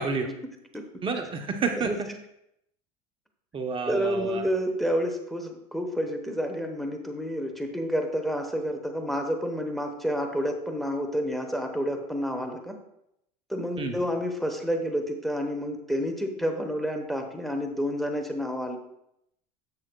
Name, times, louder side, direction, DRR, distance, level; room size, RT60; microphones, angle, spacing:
voice 1, 0.3-0.8 1.8-2.0 3.9-12.8 13.5-18.8, equal, ahead, 3 dB, 1.0 m, -29 dB
voice 2, 1.0-1.9 3.5-4.4 13.8-14.0, right 4 dB, 30° right, 4 dB, 0.8 m, -29 dB
10.5 x 7.4 x 2.3 m, 0.79 s
supercardioid pair, 105°, 18 cm